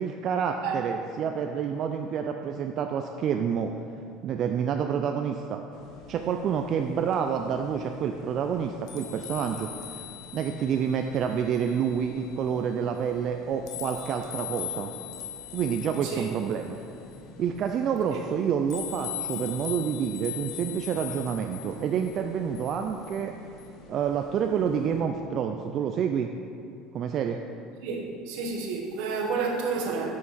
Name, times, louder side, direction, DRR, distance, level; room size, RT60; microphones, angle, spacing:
voice 1, 0.0-3.7 4.2-5.6 6.1-10.0 10.3-14.9 15.5-16.8 17.4-23.3 23.9-26.3 26.9-27.4, right 7 dB, 45° right, 4 dB, 0.3 m, -28 dB
sound 1, 5.7-25.0, left 9 dB, 60° left, 0.9 m, -42 dB
voice 2, 27.8-30.2, right 4 dB, 75° right, 1 dB, 1.2 m, -30 dB
7.6 x 5.8 x 4.1 m, 2.4 s
cardioid pair, 130°, 0 cm